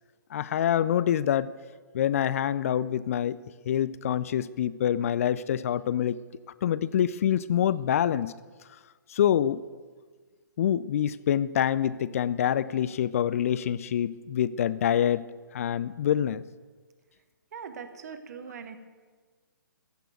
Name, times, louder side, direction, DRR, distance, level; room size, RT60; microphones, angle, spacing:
voice 1, 0.3-1.5 1.9-3.4 3.7-6.2 6.6-8.3 9.1-9.6 10.6-15.2 15.5-16.4, left 10 dB, 40° left, 17 dB, 0.4 m, -26 dB
voice 2, 17.5-18.8, right 6 dB, 50° right, 9 dB, 1.3 m, -41 dB
15.0 x 6.9 x 9.0 m, 1.5 s
figure-of-eight pair, 130°, 11 cm